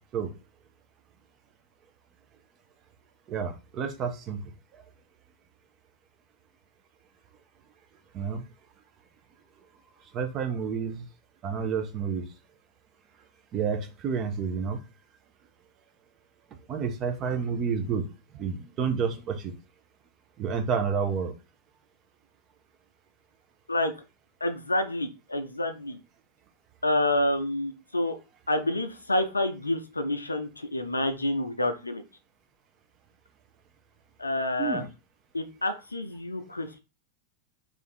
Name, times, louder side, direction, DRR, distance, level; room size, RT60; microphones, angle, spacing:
voice 1, 3.3-4.4 8.1-8.4 10.1-11.0 11.4-12.2 13.5-14.8 16.7-18.0 18.4-19.5 20.4-21.3 34.6-34.9, right 6 dB, 35° right, 6 dB, 0.6 m, -29 dB
voice 2, 24.4-26.0 26.8-28.2 28.5-32.0 34.2-34.8 35.3-36.8, left 1 dB, 85° left, 8 dB, 0.4 m, -28 dB
2.6 x 2.5 x 3.9 m, 0.30 s
figure-of-eight pair, 90°, 0 cm